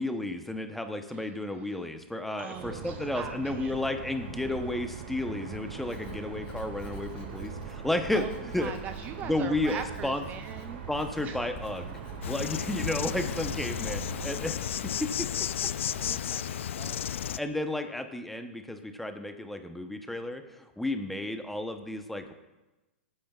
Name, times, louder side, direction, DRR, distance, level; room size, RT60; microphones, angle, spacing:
voice 1, 0.0-8.7 9.2-10.2 10.9-12.0 12.3-15.3 17.0-22.3, left 1 dB, ahead, 6 dB, 0.8 m, -32 dB
voice 2, 2.4-3.7 8.1-8.3 8.6-10.8 11.2-11.4 14.6-14.8 15.8-17.0, right 8 dB, 25° right, 9 dB, 0.4 m, -42 dB
sound 1, 2.5-14.5, right 6 dB, 65° right, 2.0 m, -41 dB
Writing, 5.8-16.3, left 4 dB, 50° left, 1.7 m, -47 dB
Insect, 12.2-17.4, left 10 dB, 75° left, 0.4 m, -33 dB
18.0 x 8.8 x 2.4 m, 1.1 s
hypercardioid pair, 135°, 7 cm